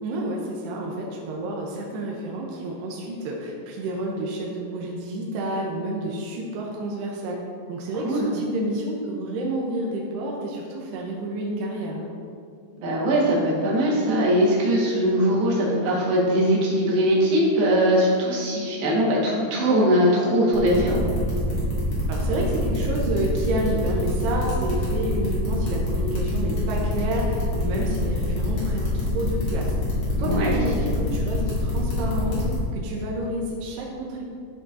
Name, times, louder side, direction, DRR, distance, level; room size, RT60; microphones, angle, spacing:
voice 1, 0.0-7.4 7.7-12.1 22.1-29.7 30.2-32.4 32.7-34.2, right 1 dB, 80° right, -2 dB, 2.4 m, -29 dB
voice 2, 12.8-21.0 30.2-30.5, equal, 60° right, -5 dB, 3.3 m, -21 dB
sound 1, 20.5-32.5, left 1 dB, 50° left, 2.1 m, -26 dB
13.0 x 6.1 x 2.7 m, 2.4 s
omnidirectional pair, 5.8 m